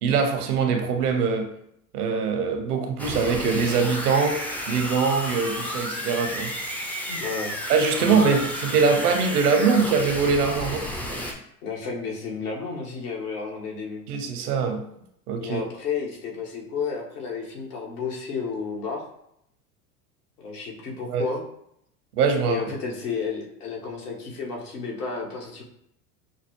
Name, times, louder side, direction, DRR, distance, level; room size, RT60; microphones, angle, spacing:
voice 1, 0.0-1.5 1.9-4.4 4.7-6.5 7.7-10.9 14.1-14.8 15.3-15.6 21.1-21.2 22.2-22.6, right 5 dB, 75° right, 5 dB, 0.9 m, -22 dB
sound 1, 3.0-11.3, equal, 5° left, 0.3 m, -32 dB
voice 2, 7.1-7.6 8.0-8.4 11.6-14.0 15.4-19.0 20.4-21.4 22.4-25.6, left 5 dB, 80° left, -1 dB, 1.3 m, -32 dB
5.6 x 2.0 x 2.9 m, 0.74 s
hypercardioid pair, 90°, 46 cm